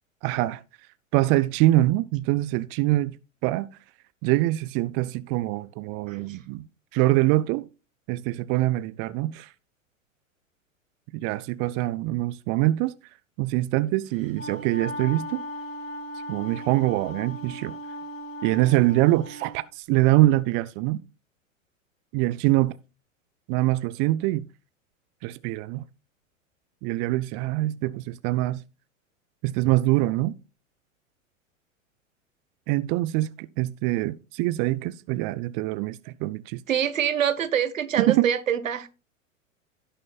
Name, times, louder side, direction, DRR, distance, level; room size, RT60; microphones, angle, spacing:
voice 1, 0.2-0.6 1.1-3.1 3.4-3.7 4.2-6.6 6.9-7.7 8.1-9.5 11.1-12.9 13.4-15.4 16.3-17.8 18.4-21.0 22.1-22.8 23.5-24.4 25.2-25.8 26.8-28.6 29.4-30.3 32.7-33.3 33.6-36.6 38.0-38.3, right 17 dB, 30° right, 0.4 m, -24 dB
voice 2, 6.1-6.4 36.7-38.9, right 9 dB, 75° right, 1.3 m, -25 dB
Wind instrument woodwind instrument, 14.1-19.6, equal, 80° left, 4.1 m, -37 dB
16.5 x 6.4 x 2.3 m
figure-of-eight pair, 95°, 40 cm